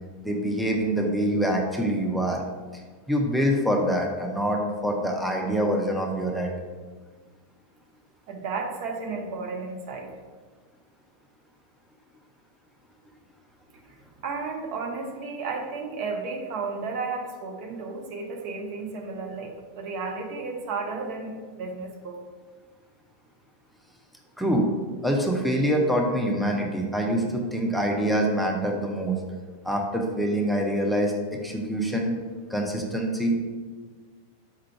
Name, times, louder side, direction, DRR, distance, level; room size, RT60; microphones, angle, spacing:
voice 1, 0.2-2.4 2.7-2.8 3.1-6.5 24.4-24.7 25.0-29.2 29.6-31.1 31.4-32.2 32.5-33.4, equal, ahead, 0 dB, 0.5 m, -25 dB
voice 2, 8.3-10.1 14.2-22.2, right 4 dB, 45° right, 2 dB, 0.6 m, -33 dB
4.5 x 2.4 x 4.5 m, 1.5 s
figure-of-eight pair, 90°, 0 cm